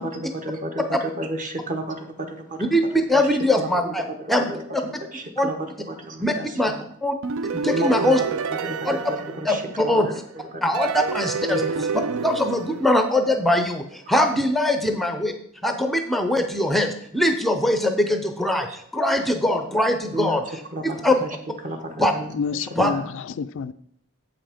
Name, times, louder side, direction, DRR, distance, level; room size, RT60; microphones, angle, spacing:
voice 1, 0.0-0.8 1.2-2.7 3.6-3.7 5.1-5.5 5.9-6.8 7.7-8.1 8.6-10.2 10.5-10.6 11.5-11.8 20.1-20.4 20.7-20.8 21.2-21.3 21.6-22.3 22.9-23.0, right 1 dB, 35° right, 1.1 m, -31 dB
voice 2, 2.6-4.5 5.4-5.5 6.2-6.7 7.0-7.2 7.5-8.2 8.8-9.0 9.4-10.1 10.6-11.6 12.2-15.3 15.6-21.2 22.0-22.1 22.8-22.9, left 1 dB, ahead, 0.5 m, -22 dB
sound 1, 7.2-10.1 10.7-13.6, right 5 dB, 60° right, 0.4 m, -29 dB
voice 3, 22.3-23.7, left 6 dB, 55° left, 0.3 m, -29 dB
7.6 x 5.7 x 5.0 m
head